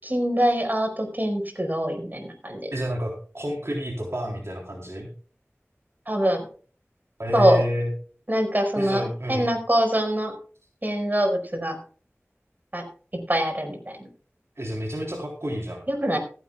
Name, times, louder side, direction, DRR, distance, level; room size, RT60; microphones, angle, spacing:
voice 1, 0.0-2.7 6.1-6.5 7.3-7.6 8.3-10.3 10.8-11.8 12.7-12.8 13.3-14.0 15.9-16.2, equal, 35° right, 4 dB, 4.9 m, -24 dB
voice 2, 2.7-5.1 7.2-7.9 8.8-9.5 14.6-15.9, equal, 60° right, 0 dB, 3.6 m, -29 dB
16.0 x 15.0 x 2.3 m, 0.40 s
wide cardioid pair, 40°, 5 cm